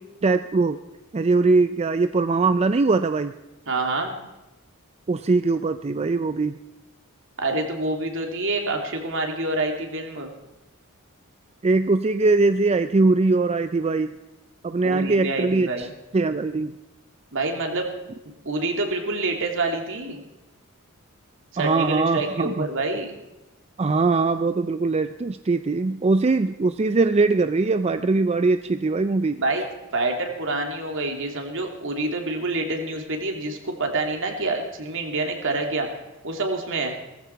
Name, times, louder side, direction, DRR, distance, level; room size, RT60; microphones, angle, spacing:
voice 1, 0.2-0.8 1.1-3.3 5.1-6.6 11.6-14.1 14.6-15.9 16.1-16.7 21.6-22.7 23.8-29.4, right 3 dB, 30° right, 10 dB, 0.4 m, -21 dB
voice 2, 3.7-4.1 7.4-10.3 14.8-15.9 17.3-17.9 18.2-20.2 21.5-23.1 29.4-29.7 29.9-35.9 36.2-36.9, right 2 dB, 60° right, 3 dB, 2.8 m, -27 dB
18.0 x 15.0 x 4.6 m, 1.0 s
head